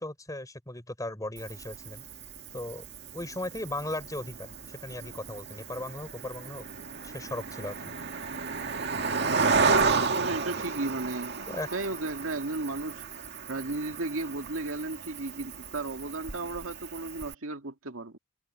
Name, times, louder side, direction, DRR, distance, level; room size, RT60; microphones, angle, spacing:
voice 1, 0.0-2.0 2.5-2.8 3.1-6.7 7.0-7.9 11.5-11.7, left 1 dB, 15° left, 6.2 m, -37 dB
Cricket, 1.4-17.3, right 4 dB, 50° right, 1.9 m, -32 dB
voice 2, 10.2-13.0 13.5-18.2, right 2 dB, 70° right, 2.1 m, -34 dB
head